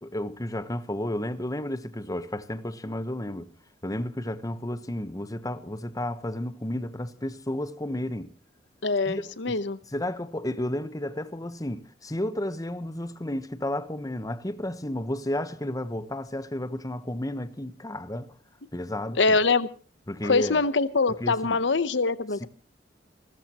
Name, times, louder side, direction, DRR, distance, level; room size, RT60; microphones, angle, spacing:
voice 1, 0.0-3.5 3.8-8.3 9.1-9.6 9.9-18.3 18.7-19.2 20.1-20.6 21.2-21.6 22.4-22.5, left 1 dB, 20° left, 1.0 m, -32 dB
voice 2, 8.8-9.8 19.2-19.7 20.2-22.5, left 4 dB, 70° left, 0.9 m, -24 dB
30.0 x 13.5 x 2.9 m
head